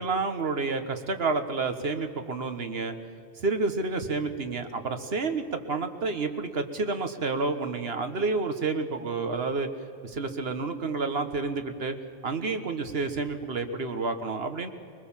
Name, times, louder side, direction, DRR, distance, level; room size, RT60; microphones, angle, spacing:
voice 1, 0.0-3.0 3.4-9.7 10.0-12.0 12.2-14.7, right 3 dB, 65° right, 7 dB, 1.6 m, -29 dB
21.5 x 21.0 x 7.4 m, 2.6 s
omnidirectional pair, 1.1 m